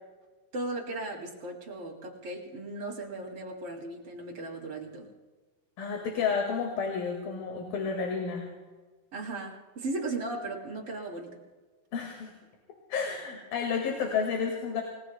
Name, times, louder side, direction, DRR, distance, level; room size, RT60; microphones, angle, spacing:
voice 1, 0.5-5.1 9.1-11.4, right 2 dB, 40° right, 0 dB, 3.4 m, -37 dB
voice 2, 5.8-8.5 11.9-12.3 12.9-14.8, left 5 dB, 80° left, 2 dB, 3.7 m, -31 dB
29.0 x 19.5 x 2.2 m, 1.4 s
omnidirectional pair, 4.0 m